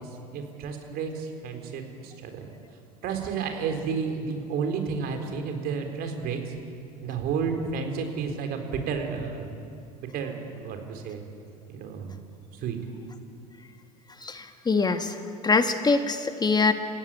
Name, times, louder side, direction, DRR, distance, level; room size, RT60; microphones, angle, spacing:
voice 1, 0.0-2.5 3.0-6.6 7.0-9.5 10.0-11.2 11.7-12.1 12.5-12.8, right 5 dB, 50° right, 4 dB, 4.0 m, -31 dB
voice 2, 14.2-15.2 15.4-16.7, left 4 dB, 20° left, 8 dB, 1.5 m, -23 dB
29.0 x 16.0 x 8.8 m, 2.5 s
hypercardioid pair, 75°, 20 cm